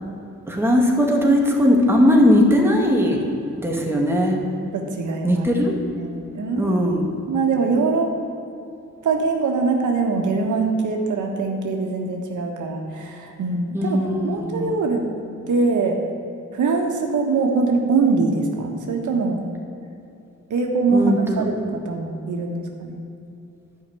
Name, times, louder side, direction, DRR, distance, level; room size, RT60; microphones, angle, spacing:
voice 1, 0.5-3.2 3.6-4.4 5.2-5.8 6.6-7.1 13.7-14.8 20.9-21.4, left 1 dB, 10° right, -1 dB, 2.3 m, -19 dB
voice 2, 4.7-5.5 6.0-6.8 7.3-8.1 9.0-14.0 14.2-15.0 15.5-16.0 16.5-19.4 20.5-21.6 21.8-23.0, right 4 dB, 80° right, 2 dB, 1.5 m, -22 dB
11.5 x 5.9 x 9.2 m, 2.8 s
cardioid pair, 80°, 30 cm